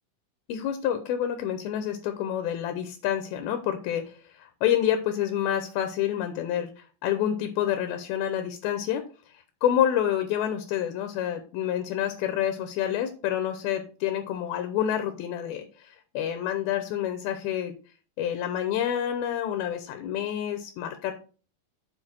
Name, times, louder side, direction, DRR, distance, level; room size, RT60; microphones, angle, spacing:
voice 1, 0.5-9.1 9.3-17.7 18.2-21.1, left 10 dB, 75° left, 8 dB, 2.4 m, -28 dB
7.8 x 4.8 x 4.3 m, 0.38 s
omnidirectional pair, 4.8 m